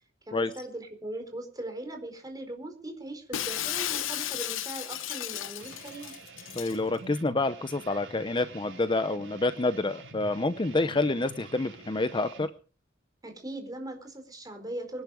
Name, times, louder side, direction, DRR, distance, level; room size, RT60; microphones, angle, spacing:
voice 1, 0.3-6.1 13.2-15.0, right 1 dB, 20° right, 5 dB, 4.6 m, -39 dB
Shatter, 3.3-6.8, left 12 dB, 90° left, 0.8 m, -34 dB
sound 1, 5.6-12.5, right 2 dB, 85° right, 5.1 m, -47 dB
voice 2, 6.6-12.5, left 2 dB, 25° left, 11 dB, 0.7 m, -28 dB
24.0 x 10.5 x 5.1 m, 0.40 s
head